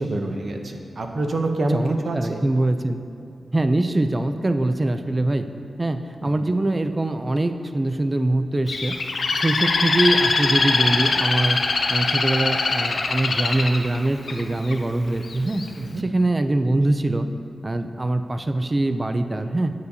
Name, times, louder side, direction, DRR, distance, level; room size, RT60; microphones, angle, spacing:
voice 1, 0.0-2.4 6.2-6.3 15.8-16.0, right 2 dB, 55° right, 3 dB, 0.7 m, -26 dB
voice 2, 1.7-3.0 3.5-5.5 5.8-8.9 9.3-11.6 11.9-15.6 16.0-17.3 17.6-19.7, right 2 dB, 25° right, 8 dB, 0.4 m, -23 dB
Bird, 8.7-14.7 15.3-15.7, left 3 dB, 75° left, 0.6 m, -22 dB
9.2 x 8.0 x 2.8 m, 2.6 s
wide cardioid pair, 105°, 0 cm